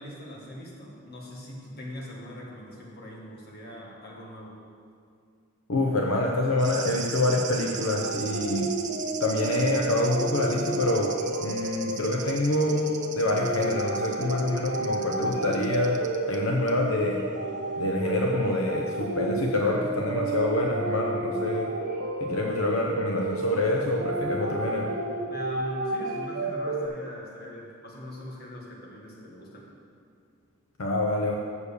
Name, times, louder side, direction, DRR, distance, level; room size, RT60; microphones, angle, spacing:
voice 1, 0.0-4.6 25.3-29.7, left 1 dB, 50° left, -2 dB, 1.7 m, -41 dB
voice 2, 5.7-8.7 9.2-11.1 11.4-12.8 13.1-16.0 16.3-17.2 17.8-21.7 22.2-24.9 30.8-31.4, left 2 dB, 85° left, 0 dB, 0.8 m, -26 dB
sound 1, 6.6-16.4 16.7-16.8, right 7 dB, 40° right, 0.6 m, -39 dB
sound 2, 7.8-26.9, right 2 dB, 55° right, 0.9 m, -31 dB
7.0 x 6.6 x 6.8 m, 2.2 s
head